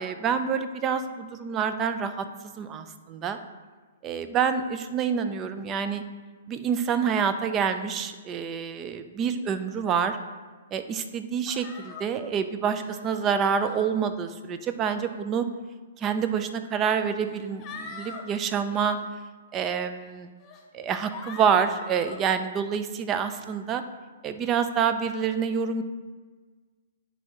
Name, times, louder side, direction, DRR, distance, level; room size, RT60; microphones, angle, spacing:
voice 1, 0.0-2.9 3.2-3.4 4.0-6.0 6.5-10.2 10.7-15.5 16.0-19.0 19.5-20.3 20.7-23.8 24.2-25.8, right 7 dB, 25° right, 10 dB, 0.4 m, -27 dB
sound 1, 11.5-12.1 12.7-13.0 13.5-13.9 14.8-15.2 16.2-16.3 17.2-18.2 18.6-19.0 19.6-19.8 20.4-20.6 21.1-22.2, left 5 dB, 25° left, 0.9 m, -43 dB
10.0 x 3.5 x 2.9 m, 1.4 s
hypercardioid pair, 130°, 0 cm